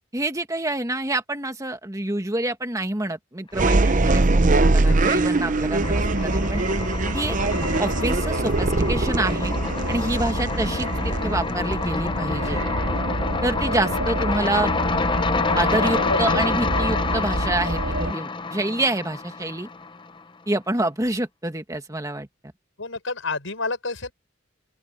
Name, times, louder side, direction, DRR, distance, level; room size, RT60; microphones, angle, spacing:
voice 1, 0.1-6.6 7.1-7.4 7.8-9.5 9.9-12.6 13.4-14.7 15.5-19.7 20.5-22.3, right 1 dB, 15° right, 1.7 m, -27 dB
sound 1, 3.5-12.2, right 2 dB, 40° right, 0.7 m, -22 dB
sound 2, 4.0-4.7 5.0-20.2, left 4 dB, 25° left, 0.7 m, -28 dB
voice 2, 4.9-5.6 16.1-17.0 22.8-24.1, left 3 dB, 75° left, 5.6 m, -31 dB
sound 3, 5.8-18.1, right 1 dB, 90° right, 2.1 m, -28 dB
open air
head